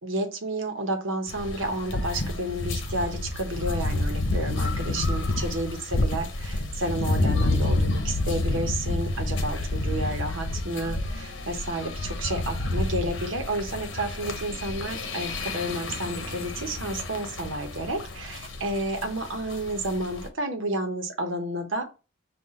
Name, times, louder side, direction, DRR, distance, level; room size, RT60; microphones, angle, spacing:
voice 1, 0.0-21.8, right 1 dB, 85° right, 4 dB, 1.0 m, -31 dB
sound 1, 1.3-20.3, left 2 dB, 75° left, 0.9 m, -29 dB
5.6 x 2.5 x 3.7 m, 0.32 s
head